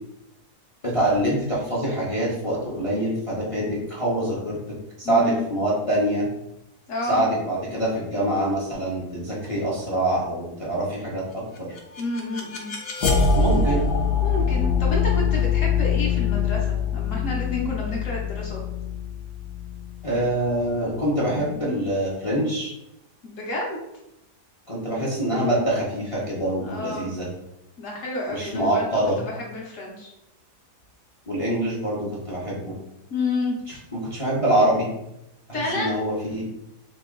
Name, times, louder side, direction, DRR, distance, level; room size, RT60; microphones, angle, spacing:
voice 1, 0.8-6.3 7.1-11.7 13.3-13.8 20.0-22.7 24.7-27.3 28.3-29.2 31.3-32.7 33.9-34.9 35.5-36.4, right 1 dB, 35° left, -5 dB, 0.5 m, -25 dB
voice 2, 5.0-5.4 6.9-7.2 12.0-12.7 14.2-18.6 23.2-23.8 26.7-27.1 27.8-28.9 29.3-30.1 33.1-33.8 35.5-35.9, left 2 dB, 60° left, -2 dB, 1.0 m, -30 dB
sound 1, 11.6-20.5, left 5 dB, 85° left, 1.3 m, -24 dB
3.0 x 2.8 x 3.7 m, 0.85 s
omnidirectional pair, 1.8 m